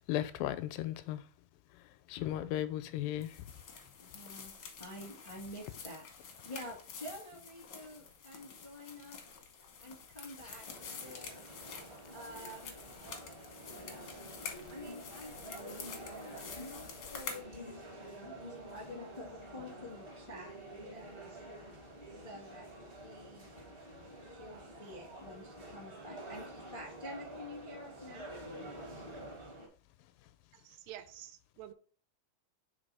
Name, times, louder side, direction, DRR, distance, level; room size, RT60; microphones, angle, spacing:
voice 1, 0.1-1.2 2.1-3.4, left 13 dB, 85° left, 2.2 m, -35 dB
sound 1, 3.2-17.4, left 6 dB, 70° left, 1.2 m, -48 dB
voice 2, 4.0-9.2 9.8-10.7 11.0-11.4 12.1-12.7 13.8-14.1 14.7-17.6 18.0-21.3 22.2-23.5 24.2-28.4, left 1 dB, 30° left, 0.5 m, -49 dB
sound 2, 10.6-29.7, right 1 dB, 40° right, 0.7 m, -49 dB
voice 3, 30.6-31.7, right 12 dB, 85° right, 2.2 m, -49 dB
5.2 x 3.4 x 5.4 m
omnidirectional pair, 3.8 m